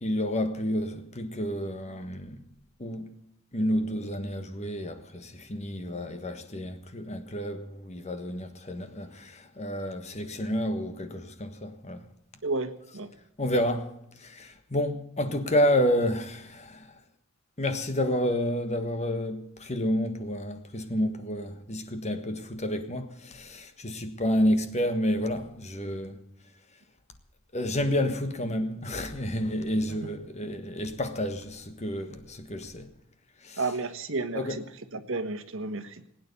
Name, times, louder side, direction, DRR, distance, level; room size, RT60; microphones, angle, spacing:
voice 1, 0.0-2.4 2.8-3.1 3.5-12.0 13.4-16.9 17.6-26.2 27.5-32.9 33.4-33.6 34.3-34.6, equal, 30° left, 1.4 m, -30 dB
voice 2, 12.4-13.1 29.9-30.1 33.6-34.6 34.9-36.1, right 3 dB, 60° right, 1.5 m, -32 dB
20.5 x 9.4 x 7.0 m
head